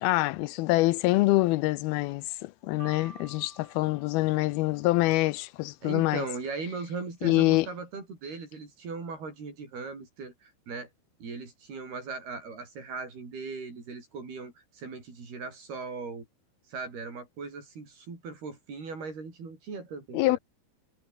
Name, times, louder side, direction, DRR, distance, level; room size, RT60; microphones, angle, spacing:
voice 1, 0.0-6.3 7.2-7.7 20.1-20.4, left 19 dB, 80° left, 2.3 m, -25 dB
sound 1, 2.8-4.9, right 4 dB, 50° right, 8.5 m, -50 dB
voice 2, 5.8-10.9 11.2-16.3 16.7-20.4, right 4 dB, 70° right, 8.8 m, -38 dB
omnidirectional pair, 4.7 m